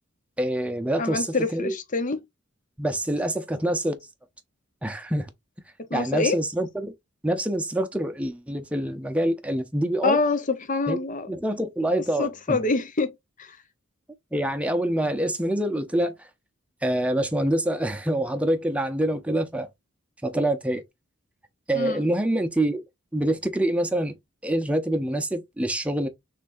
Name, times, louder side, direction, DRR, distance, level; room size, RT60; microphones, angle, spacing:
voice 1, 0.4-1.7 2.8-4.0 4.8-5.3 5.9-6.9 7.2-10.2 10.9-11.0 11.3-12.6 14.3-16.3 16.8-19.7 20.2-20.8 21.7-22.8 23.1-24.1 24.4-26.1, right 1 dB, 5° right, 0.7 m, -26 dB
voice 2, 1.0-2.2 5.9-6.4 10.0-11.3 12.2-13.6 21.7-22.0, left 3 dB, 40° left, 0.8 m, -26 dB
5.9 x 3.3 x 2.6 m
head